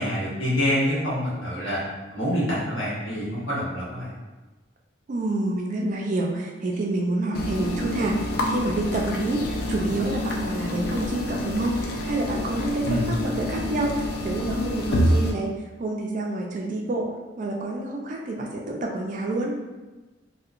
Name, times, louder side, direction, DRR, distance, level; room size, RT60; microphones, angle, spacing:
voice 1, 0.0-1.8 2.1-4.1 12.8-13.0, equal, 80° left, -8 dB, 1.1 m, -26 dB
voice 2, 5.1-17.1 17.4-19.6, right 2 dB, 40° right, 0 dB, 0.3 m, -28 dB
sound 1, 7.3-15.3, left 1 dB, 55° left, 0.3 m, -27 dB
2.7 x 2.1 x 2.4 m, 1.2 s
head